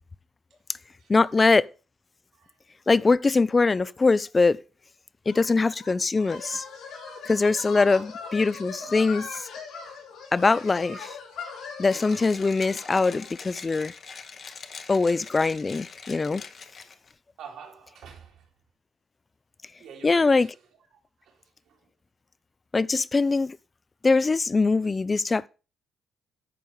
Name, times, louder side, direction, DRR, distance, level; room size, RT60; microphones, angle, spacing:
voice 1, 1.1-1.7 2.9-4.6 5.3-6.6 7.3-9.5 10.3-11.2 11.8-13.9 14.9-16.4 20.0-20.5 22.7-23.6 24.0-25.5, left 3 dB, 25° left, 0.4 m, -22 dB
sound 1, 5.3-13.4, left 5 dB, 80° left, 3.7 m, -40 dB
voice 2, 7.8-8.1 11.3-11.7 14.5-14.6 14.9-15.0 17.4-18.5 19.8-21.9, right 6 dB, 80° right, 2.7 m, -48 dB
Mechanisms, 11.9-17.1, left 5 dB, 50° left, 1.0 m, -43 dB
11.0 x 4.6 x 5.1 m
cardioid pair, 90°, 0 cm